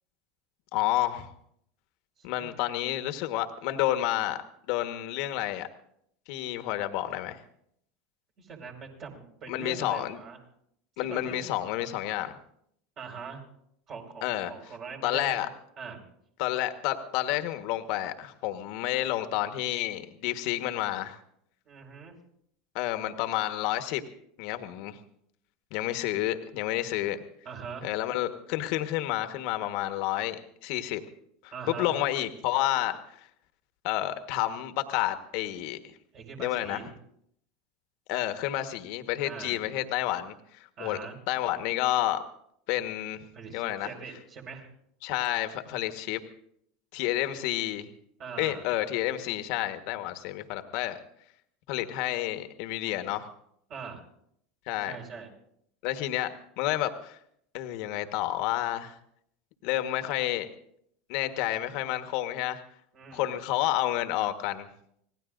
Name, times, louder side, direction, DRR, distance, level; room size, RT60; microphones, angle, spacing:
voice 1, 0.7-1.3 2.2-4.4 4.7-5.7 6.3-7.4 9.5-10.2 11.0-12.3 14.2-14.5 15.0-15.5 16.4-21.2 22.7-24.0 24.4-25.0 25.7-27.2 27.8-31.0 31.4-33.0 33.8-35.8 36.4-36.8 38.1-40.3 40.8-41.0 41.3-42.2 42.7-43.9 45.0-46.2 46.9-47.9 48.4-51.0 51.7-53.3 54.7-55.0 55.8-57.2 57.5-59.0 59.6-60.5 61.1-62.6 63.1-64.7, left 14 dB, 60° left, 8 dB, 1.4 m, -30 dB
voice 2, 8.4-10.4 11.0-11.5 13.0-13.4 13.9-15.4 15.8-16.0 21.7-22.1 27.5-27.9 31.5-31.9 36.1-36.9 39.2-39.6 40.8-41.2 43.3-44.7 48.2-48.6 53.7-54.1 54.8-55.3 62.9-63.3, right 5 dB, 45° right, 1 dB, 5.2 m, -42 dB
26.0 x 18.5 x 2.6 m, 0.71 s
hypercardioid pair, 85°, 0 cm